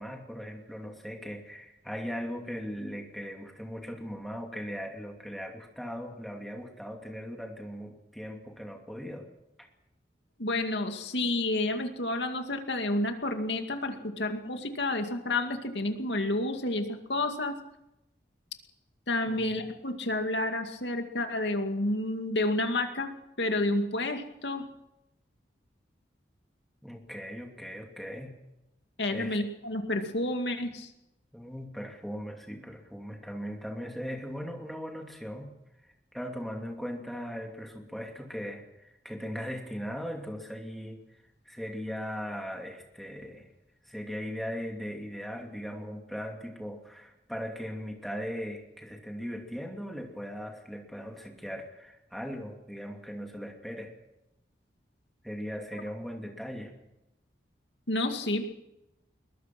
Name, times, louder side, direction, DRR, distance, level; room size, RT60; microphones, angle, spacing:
voice 1, 0.0-9.3 9.6-9.7 19.3-19.5 26.8-28.3 29.1-29.4 31.3-35.5 36.1-41.0 41.5-43.5 43.8-53.9 55.2-56.7, equal, ahead, 2 dB, 2.7 m, -39 dB
voice 2, 10.4-17.6 19.1-23.1 23.4-24.6 29.0-30.9 57.9-58.4, left 2 dB, 80° left, 5 dB, 2.4 m, -30 dB
22.0 x 20.5 x 6.1 m, 0.89 s
head